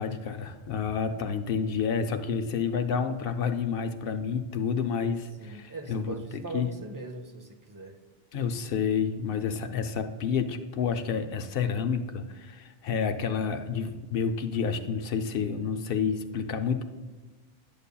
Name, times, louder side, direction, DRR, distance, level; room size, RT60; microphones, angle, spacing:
voice 1, 0.0-6.7 8.3-16.8, left 6 dB, 70° left, 7 dB, 0.8 m, -29 dB
voice 2, 5.3-8.0, right 3 dB, 25° right, 4 dB, 0.5 m, -40 dB
10.5 x 6.9 x 2.2 m, 1.3 s
omnidirectional pair, 1.0 m